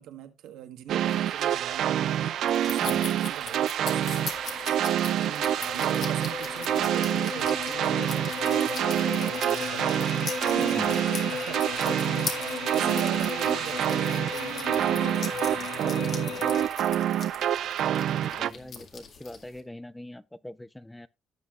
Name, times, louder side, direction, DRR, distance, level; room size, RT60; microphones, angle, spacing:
voice 1, 0.0-4.2 5.0-10.2 10.6-16.5, right 11 dB, 85° right, 1.4 m, -42 dB
sound 1, 0.9-18.5, right 11 dB, 65° right, 0.4 m, -27 dB
sound 2, 1.0-19.6, left 5 dB, 55° left, 2.0 m, -42 dB
sound 3, 3.9-16.7, left 6 dB, 80° left, 1.8 m, -37 dB
voice 2, 10.6-11.0 18.1-21.1, left 1 dB, 5° left, 0.4 m, -41 dB
16.5 x 5.9 x 2.5 m
cardioid pair, 120°, 0 cm